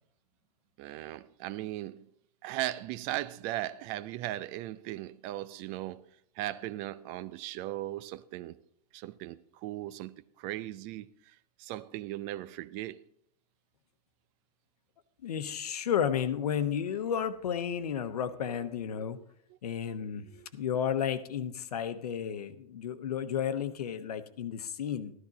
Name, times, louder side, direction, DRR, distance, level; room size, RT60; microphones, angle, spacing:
voice 1, 0.8-2.0 2.4-6.0 6.4-8.6 8.9-11.1 11.6-13.0 18.5-18.7 20.3-20.5, right 15 dB, 40° right, 0.5 m, -38 dB
voice 2, 15.2-19.2 19.6-25.1, left 8 dB, 70° left, 1.1 m, -32 dB
13.0 x 12.5 x 4.0 m
figure-of-eight pair, 100°, 21 cm